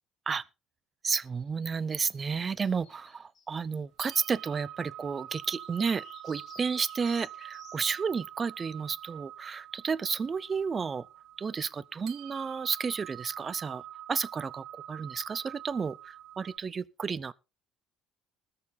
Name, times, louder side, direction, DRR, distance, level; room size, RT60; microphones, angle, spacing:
voice 1, 1.0-11.0 11.4-13.8 14.1-17.3, right 5 dB, 20° right, 0.5 m, -32 dB
sound 1, 1.4-3.5 5.3-8.0, left 6 dB, 40° left, 2.2 m, -56 dB
sound 2, 4.0-16.6, right 12 dB, 60° right, 1.5 m, -46 dB
20.5 x 6.8 x 4.0 m
cardioid pair, 160°, 0 cm